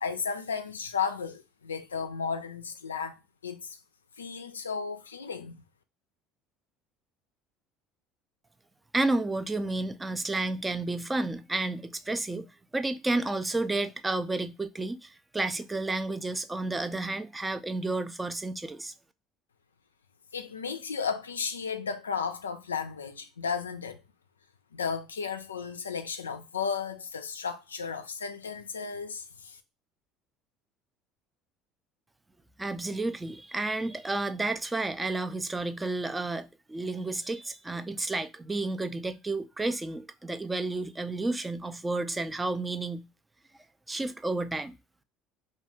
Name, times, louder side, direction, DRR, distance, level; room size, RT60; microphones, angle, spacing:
voice 1, 0.0-3.2 3.4-3.8 4.2-5.6 20.3-24.0 24.7-29.6, left 6 dB, 90° left, 0.3 m, -34 dB
voice 2, 8.9-12.5 12.7-18.9 32.6-43.1 43.9-44.8, right 2 dB, 15° right, 0.3 m, -31 dB
2.3 x 2.2 x 3.0 m
hypercardioid pair, 65°, 0 cm